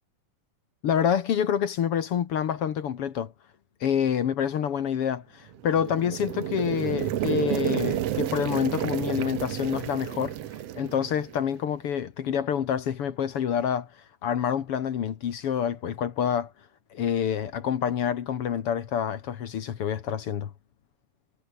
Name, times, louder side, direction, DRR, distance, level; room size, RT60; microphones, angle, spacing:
voice 1, 0.8-3.3 3.8-10.4 10.8-13.9 14.2-16.5 16.9-20.5, left 8 dB, 55° left, 1.9 m, -27 dB
sound 1, 5.5-11.6, right 12 dB, 60° right, 1.8 m, -31 dB
omnidirectional pair, 3.7 m